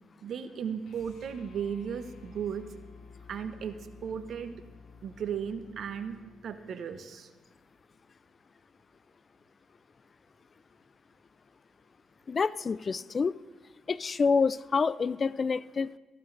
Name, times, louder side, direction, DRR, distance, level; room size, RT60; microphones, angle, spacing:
voice 1, 0.2-2.7 3.3-4.6 5.0-6.2 6.4-7.3, right 7 dB, 65° right, 10 dB, 0.9 m, -36 dB
sound 1, 0.8-7.2, left 5 dB, 70° left, 1.6 m, -53 dB
voice 2, 12.3-13.3 13.9-16.0, left 5 dB, 40° left, 19 dB, 0.3 m, -27 dB
14.5 x 12.5 x 3.3 m, 1.3 s
supercardioid pair, 65°, 0 cm